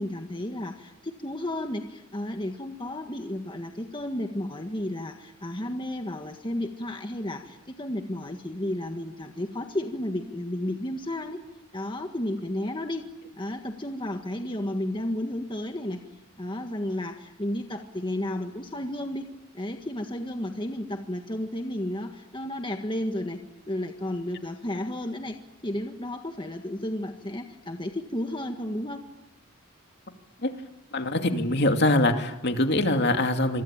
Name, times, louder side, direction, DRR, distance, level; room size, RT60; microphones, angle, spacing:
voice 1, 0.0-11.4 11.7-13.0 13.4-16.0 16.4-19.3 19.5-23.4 23.7-25.4 25.6-29.0, left 1 dB, 20° left, 4 dB, 1.7 m, -32 dB
voice 2, 30.9-33.6, left 1 dB, 50° left, 5 dB, 2.5 m, -23 dB
27.0 x 24.0 x 9.0 m, 0.95 s
head